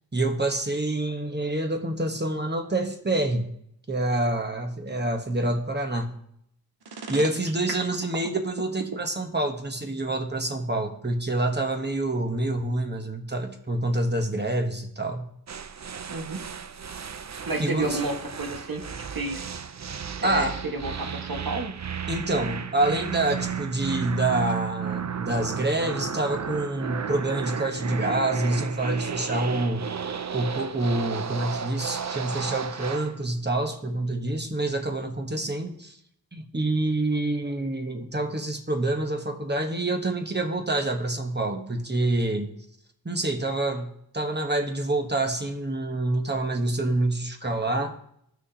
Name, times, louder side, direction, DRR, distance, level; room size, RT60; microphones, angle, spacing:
voice 1, 0.1-3.5 3.9-6.1 7.1-15.3 17.6-18.0 20.2-20.6 22.1-29.8 30.3-36.0 36.3-42.5 43.0-48.0, right 2 dB, 30° right, 4 dB, 1.1 m, -27 dB
sound 1, 6.8-9.0, right 4 dB, 85° right, 0.9 m, -35 dB
sound 2, 15.5-33.2, right 7 dB, 45° right, 0.5 m, -34 dB
voice 2, 16.1-16.4 17.5-19.4 20.2-21.8, right 2 dB, 65° right, 2 dB, 1.5 m, -31 dB
15.5 x 6.3 x 2.8 m, 0.71 s
wide cardioid pair, 60°, 37 cm